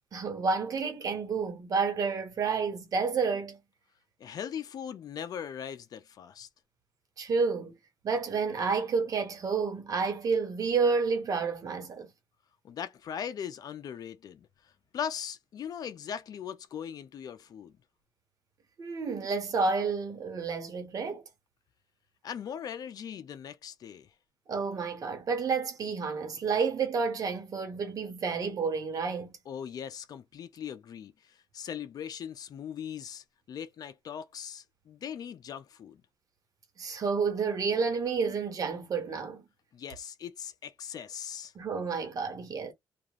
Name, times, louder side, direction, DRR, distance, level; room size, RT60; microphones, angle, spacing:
voice 1, 0.1-3.6 7.2-7.7 8.0-12.1 18.8-21.2 24.5-29.3 36.8-39.4 41.5-42.7, right 5 dB, 55° right, 1.2 m, -30 dB
voice 2, 4.2-6.5 12.6-14.5 14.9-17.7 22.2-24.1 29.5-36.0 39.7-41.5, left 8 dB, 60° left, 0.5 m, -40 dB
3.0 x 2.4 x 2.4 m
cardioid pair, 110°, 7 cm